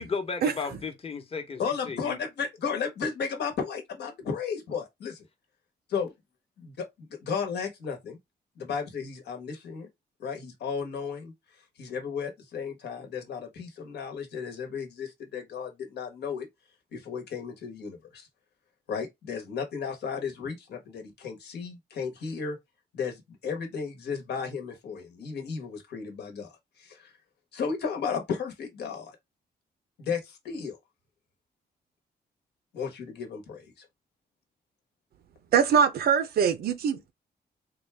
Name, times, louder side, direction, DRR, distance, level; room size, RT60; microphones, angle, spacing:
voice 1, 0.0-2.2, left 5 dB, 35° left, 0.9 m, -34 dB
voice 2, 1.6-5.2 5.9-6.1 6.6-8.2 8.6-9.9 10.2-11.3 11.8-16.5 16.9-18.3 18.9-22.6 22.9-26.5 26.8-27.1 27.5-29.1 30.0-30.8 32.7-33.7, left 6 dB, 80° left, 1.2 m, -34 dB
voice 3, 35.5-37.1, right 7 dB, 65° right, 0.6 m, -23 dB
3.8 x 2.3 x 3.3 m
cardioid pair, 120°, 17 cm